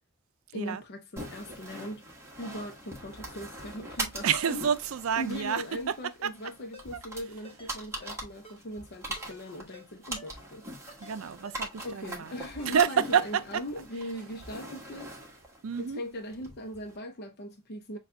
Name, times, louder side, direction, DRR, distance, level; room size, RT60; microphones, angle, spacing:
voice 1, 0.5-2.0 2.4-4.6 5.2-10.7 11.8-15.1 15.8-18.0, equal, 50° left, 0.7 m, -39 dB
sound 1, 1.2-17.0, right 1 dB, 15° right, 1.3 m, -42 dB
voice 2, 4.2-5.9 6.2-6.3 11.0-12.3 12.7-13.6 15.6-16.0, right 7 dB, 75° right, 0.5 m, -28 dB
Ringtone, 6.7-6.9 7.4-7.7 8.0-8.2 8.4-8.6 9.2-9.4 9.7-9.9 10.2-10.3 10.9-11.2 11.4-11.6 11.9-12.0 12.6-12.9 13.2-13.3, left 1 dB, 25° left, 1.3 m, -50 dB
6.6 x 2.4 x 2.6 m
head